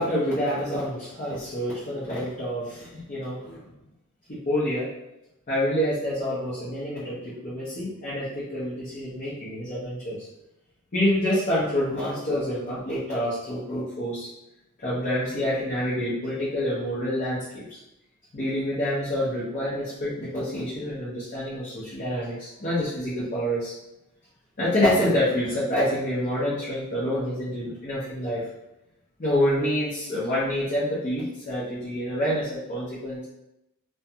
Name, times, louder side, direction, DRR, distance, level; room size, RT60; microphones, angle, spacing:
voice 1, 0.0-3.6 4.3-4.9 5.5-10.3 10.9-14.3 14.8-17.8 18.3-23.7 24.6-28.4 29.2-33.2, equal, 35° left, -9 dB, 0.6 m, -27 dB
2.4 x 2.2 x 2.7 m, 0.89 s
head